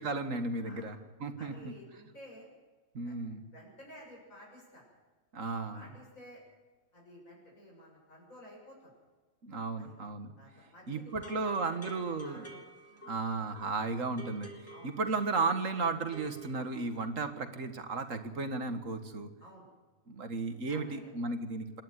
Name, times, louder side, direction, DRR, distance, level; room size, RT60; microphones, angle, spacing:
voice 1, 0.0-1.7 2.9-3.4 5.3-5.8 9.4-10.3 10.9-12.4 13.0-19.3 20.1-21.8, right 3 dB, 70° right, 8 dB, 2.1 m, -34 dB
voice 2, 0.6-0.9 1.4-2.5 3.0-4.9 5.7-6.4 6.9-8.9 9.8-9.9 10.4-12.6 13.2-13.3 13.8-14.0 14.7-14.9 19.4-19.7 20.3-21.1, equal, 80° left, -2 dB, 7.2 m, -53 dB
sound 1, 11.1-17.0, right 1 dB, 10° left, 2.4 m, -51 dB
26.5 x 10.5 x 9.8 m, 1.3 s
omnidirectional pair, 1.4 m